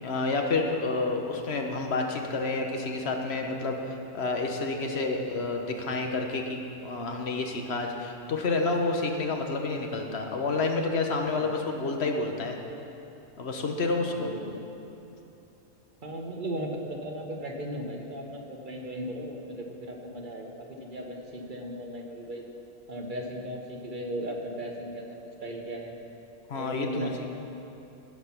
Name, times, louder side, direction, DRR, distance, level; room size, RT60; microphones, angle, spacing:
voice 1, 0.0-12.6 13.4-14.3 26.5-27.1, left 3 dB, 55° left, 3 dB, 1.3 m, -29 dB
voice 2, 14.1-14.6 16.0-20.5 20.8-22.4 22.9-25.9 26.5-27.3, right 1 dB, 40° right, 1 dB, 1.4 m, -36 dB
17.0 x 5.9 x 5.9 m, 2.9 s
omnidirectional pair, 1.3 m